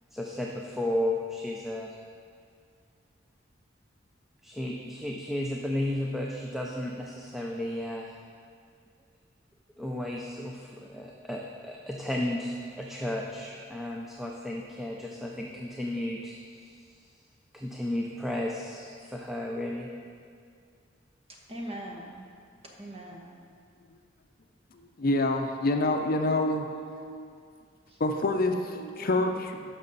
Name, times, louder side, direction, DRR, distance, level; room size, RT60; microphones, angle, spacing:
voice 1, 0.1-2.0 4.4-8.2 9.8-17.0 17.5-19.9, left 1 dB, ahead, -1 dB, 0.5 m, -33 dB
voice 2, 21.5-22.3 22.8-23.4 25.7-27.3 27.9-28.0 28.7-29.2, right 1 dB, 30° right, -1 dB, 1.1 m, -42 dB
voice 3, 25.0-26.6 28.0-29.6, left 2 dB, 50° left, 5 dB, 0.6 m, -26 dB
11.0 x 6.1 x 4.0 m, 2.2 s
head